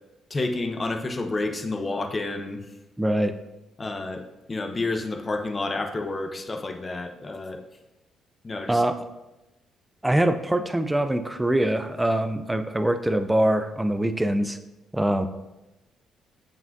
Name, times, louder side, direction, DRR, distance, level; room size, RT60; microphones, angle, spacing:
voice 1, 0.3-2.7 3.8-4.2 4.5-7.6 8.4-8.8, left 2 dB, 30° left, 5 dB, 0.7 m, -29 dB
voice 2, 3.0-3.3 8.7-9.0 10.0-14.6 14.9-15.3, right 1 dB, 10° right, 10 dB, 0.5 m, -23 dB
7.2 x 5.7 x 2.6 m, 1.0 s
cardioid pair, 90°, 0 cm